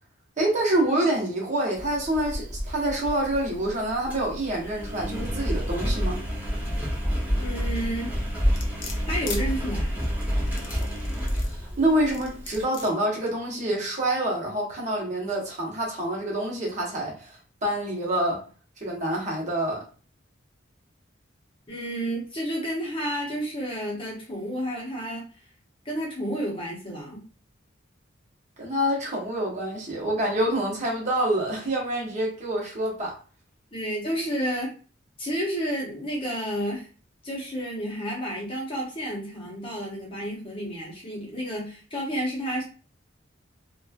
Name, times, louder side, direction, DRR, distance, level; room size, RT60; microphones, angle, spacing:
voice 1, 0.4-6.2 11.5-18.5 18.8-19.8 28.6-33.2, right 1 dB, 35° right, 0.9 m, -27 dB
Engine, 1.8-12.6, equal, 10° right, 0.6 m, -29 dB
voice 2, 7.4-8.1 9.1-9.9 21.7-25.3 25.8-27.2 33.7-34.7 35.2-36.9 37.2-42.6, equal, 25° left, 0.8 m, -31 dB
sound 1, 8.6-9.4 10.4-11.6 12.1-12.9 13.5-13.6, left 5 dB, 60° left, 0.6 m, -38 dB
3.0 x 2.2 x 2.3 m
head